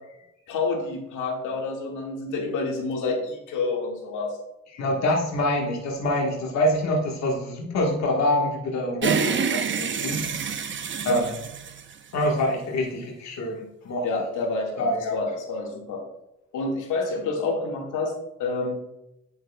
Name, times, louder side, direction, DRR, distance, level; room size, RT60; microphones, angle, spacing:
voice 1, 0.5-4.4 11.1-11.2 14.0-16.0 16.5-18.1 18.4-18.8, left 3 dB, 85° left, 0 dB, 2.0 m, -28 dB
voice 2, 4.7-10.2 11.0-11.3 12.1-14.0 14.8-15.2, left 1 dB, 60° left, -1 dB, 1.5 m, -25 dB
sound 1, 9.0-12.5, right 6 dB, 40° right, 0.8 m, -28 dB
9.1 x 7.7 x 2.3 m, 0.86 s
cardioid pair, 90°, 30 cm